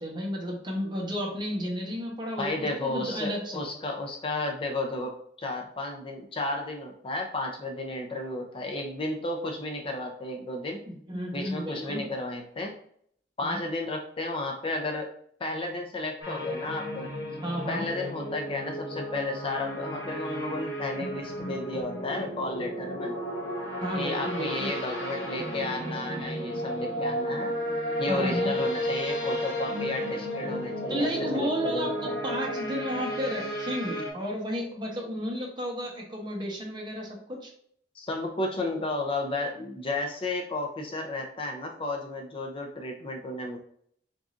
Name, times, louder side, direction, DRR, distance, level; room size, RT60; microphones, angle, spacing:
voice 1, 0.0-3.7 10.9-12.0 13.4-13.6 17.4-17.8 23.8-24.7 28.1-28.5 30.9-37.5, equal, 25° right, -1 dB, 0.9 m, -32 dB
voice 2, 2.4-10.8 11.3-12.7 13.4-15.1 15.4-17.1 17.7-23.2 23.9-27.5 28.0-32.2 38.0-43.6, left 2 dB, 30° left, 3 dB, 0.5 m, -33 dB
sound 1, 16.2-34.1, equal, 85° left, 1.4 m, -33 dB
4.0 x 3.6 x 2.5 m, 0.65 s
head